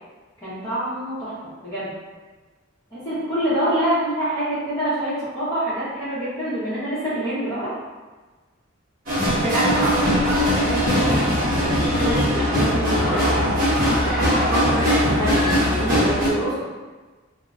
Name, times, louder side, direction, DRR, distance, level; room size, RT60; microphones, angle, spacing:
voice 1, 0.4-1.3 1.6-1.9 2.9-7.7 9.3-11.2 11.6-13.3 13.9-16.6, right 1 dB, 15° left, -13 dB, 0.8 m, -26 dB
sound 1, 9.1-16.3, equal, 40° right, 0.7 m, -20 dB
2.8 x 2.0 x 3.5 m, 1.3 s
head